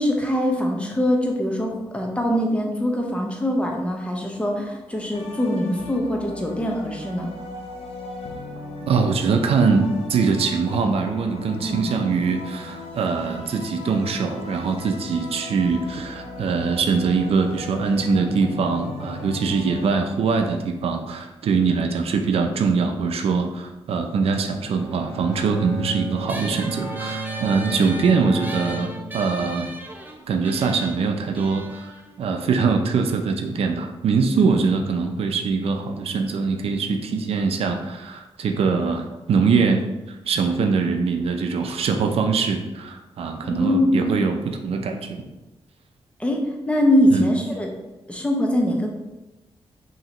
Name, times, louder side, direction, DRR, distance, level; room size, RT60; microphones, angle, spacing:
voice 1, 0.0-7.3 11.6-11.9 43.4-44.3 46.2-46.4 46.7-47.7 48.1-48.9, equal, 10° left, 0 dB, 0.8 m, -22 dB
sound 1, 5.1-19.9, left 3 dB, 90° left, 0.6 m, -37 dB
voice 2, 8.9-29.7 30.3-45.3 47.1-47.3, right 5 dB, 75° right, 5 dB, 0.5 m, -23 dB
Bowed string instrument, 24.6-29.8, right 2 dB, 40° left, 1.2 m, -34 dB
sound 2, 26.3-33.1, right 1 dB, 20° right, 0.6 m, -38 dB
5.5 x 2.9 x 2.9 m, 1.0 s
cardioid pair, 100°, 10 cm